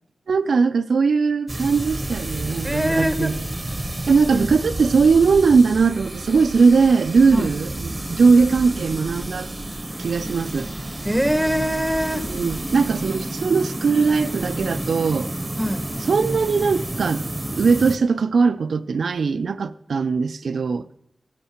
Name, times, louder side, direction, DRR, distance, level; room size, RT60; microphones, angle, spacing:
voice 1, 0.3-3.4 4.1-9.5 10.0-10.7 12.1-15.3 16.0-17.2 17.5-20.9, right 5 dB, 80° right, 0.4 m, -19 dB
sound 1, 1.5-18.0, right 1 dB, 20° right, 0.9 m, -30 dB
voice 2, 2.6-3.4 4.3-4.5 7.3-7.5 11.0-12.3 15.6-15.8, equal, ahead, 1.1 m, -23 dB
16.5 x 10.0 x 4.4 m
cardioid pair, 65°, 0 cm